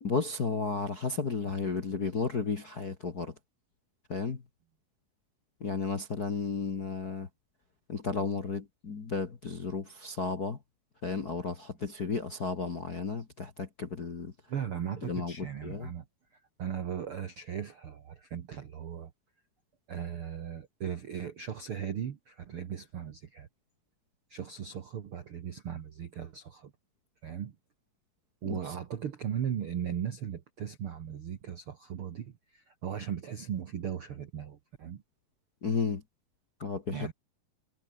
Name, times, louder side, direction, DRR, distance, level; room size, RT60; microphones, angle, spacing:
voice 1, 0.0-3.3 4.1-4.4 5.6-7.3 7.9-10.6 11.0-14.3 15.0-15.9 28.5-28.6 35.6-36.0 36.6-37.1, left 4 dB, 40° left, 1.4 m, -33 dB
voice 2, 14.5-16.0 16.3-19.1 19.9-23.5 24.3-26.7 27.2-27.5 28.4-35.0 36.9-37.1, right 8 dB, 60° right, 1.4 m, -37 dB
omnidirectional pair, 4.5 m